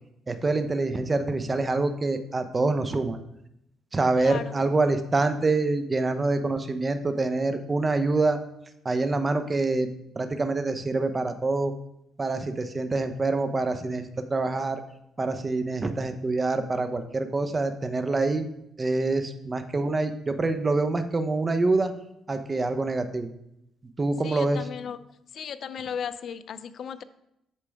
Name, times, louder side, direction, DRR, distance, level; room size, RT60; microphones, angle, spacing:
voice 1, 0.3-3.2 3.9-8.4 8.8-9.9 10.2-11.7 12.2-14.0 14.3-14.8 15.2-18.5 18.8-21.9 22.3-23.3 24.0-24.7, right 3 dB, 30° right, 8 dB, 0.8 m, -26 dB
voice 2, 4.2-4.7 24.2-25.0 25.3-27.0, left 7 dB, 60° left, 14 dB, 0.5 m, -36 dB
8.5 x 6.6 x 3.5 m, 0.79 s
cardioid pair, 90°, 0 cm